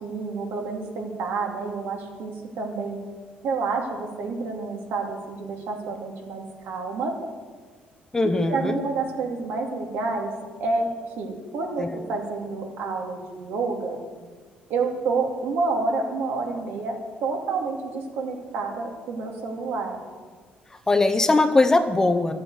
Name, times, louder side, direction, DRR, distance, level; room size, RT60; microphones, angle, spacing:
voice 1, 0.0-3.0 3.4-7.1 8.2-10.3 10.6-10.9 11.2-14.0 14.7-20.0, right 4 dB, 75° right, 1 dB, 2.7 m, -29 dB
voice 2, 8.1-8.8 11.8-11.9 20.9-22.3, left 2 dB, 15° left, 8 dB, 0.9 m, -20 dB
13.0 x 9.4 x 8.1 m, 1.5 s
cardioid pair, 125°, 4 cm